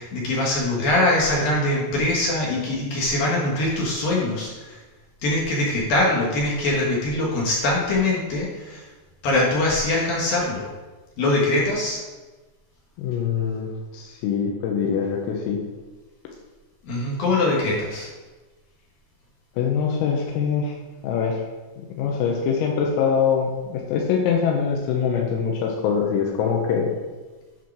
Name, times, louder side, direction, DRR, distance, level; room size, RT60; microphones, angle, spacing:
voice 1, 0.0-4.8 5.2-8.9 9.2-10.7 11.2-12.0 16.8-18.1, left 2 dB, 65° left, -3 dB, 2.3 m, -23 dB
voice 2, 13.0-15.6 19.6-20.8 21.0-21.4 21.9-26.9, left 6 dB, 90° left, 0 dB, 3.6 m, -23 dB
10.0 x 4.6 x 6.0 m, 1.2 s
omnidirectional pair, 5.9 m